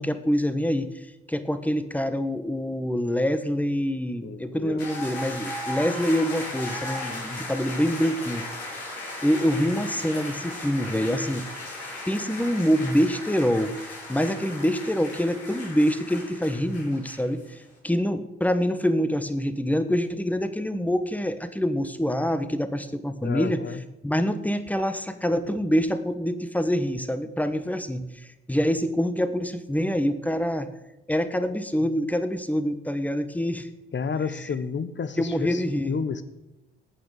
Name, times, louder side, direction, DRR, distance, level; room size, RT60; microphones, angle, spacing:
voice 1, 0.0-8.4 8.7-11.5 12.1-30.7 31.1-33.7 34.3-34.5 35.2-36.0, equal, 5° left, 10 dB, 1.5 m, -26 dB
voice 2, 4.2-4.8 23.2-23.8 33.9-36.2, left 6 dB, 40° left, 13 dB, 1.3 m, -31 dB
sound 1, 4.8-17.5, left 2 dB, 85° left, 4.6 m, -36 dB
19.5 x 8.7 x 5.1 m, 0.95 s
figure-of-eight pair, 45°, 30 cm